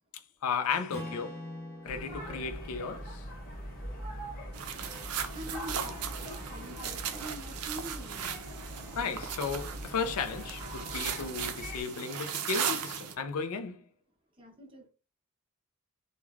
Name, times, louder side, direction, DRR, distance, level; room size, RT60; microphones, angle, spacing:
voice 1, 0.4-1.4 1.8-3.2 9.0-13.8, left 5 dB, 75° left, 0.4 m, -34 dB
Strum, 0.9-5.2, left 1 dB, 10° left, 0.6 m, -46 dB
sound 1, 1.9-11.8, equal, 40° left, 0.8 m, -42 dB
sound 2, 4.5-13.1, right 8 dB, 85° right, 0.4 m, -37 dB
voice 2, 4.6-8.5 14.4-14.9, right 1 dB, 25° right, 0.8 m, -46 dB
3.1 x 2.2 x 2.3 m
head